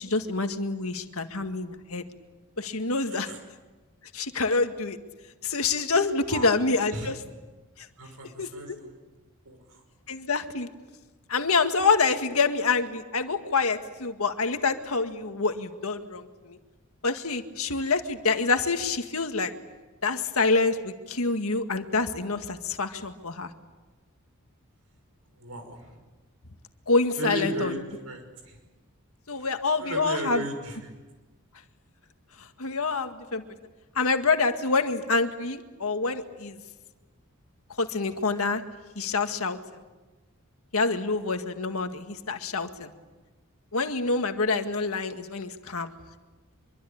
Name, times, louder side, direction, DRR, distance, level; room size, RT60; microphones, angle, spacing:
voice 1, 0.0-2.0 2.6-3.3 4.1-5.0 5.4-7.1 7.8-7.9 8.4-8.5 10.1-10.7 11.3-16.6 17.0-19.5 20.0-23.5 26.9-27.7 29.3-30.4 32.6-33.4 34.0-36.6 37.8-38.6 39.0-39.6 40.7-42.9 43.7-45.9, left 4 dB, 75° left, 6 dB, 1.9 m, -26 dB
voice 2, 3.1-3.4 6.3-6.6 6.9-7.1 8.0-8.9 9.4-9.8 25.3-26.0 27.2-28.6 29.3-29.5 29.8-30.9, right 1 dB, 85° right, 6 dB, 5.6 m, -36 dB
25.0 x 24.0 x 8.7 m, 1.2 s
head